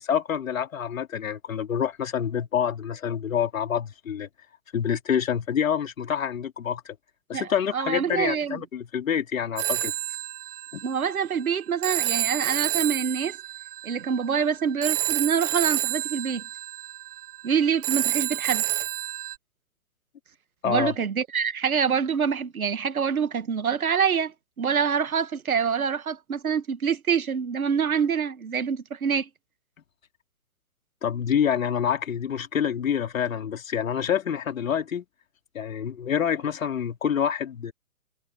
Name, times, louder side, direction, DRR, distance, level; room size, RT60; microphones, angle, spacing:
voice 1, 0.0-4.3 4.7-7.0 7.3-9.9 10.7-10.8 20.6-20.9 31.0-35.1 35.5-37.7, left 8 dB, 65° left, 3.5 m, -27 dB
voice 2, 7.3-8.6 10.8-13.3 13.8-16.4 17.4-18.6 20.6-24.3 24.6-29.3, right 7 dB, 75° right, 1.9 m, -26 dB
Telephone, 9.6-19.4, right 16 dB, 40° right, 1.7 m, -29 dB
figure-of-eight pair, 125°, 43 cm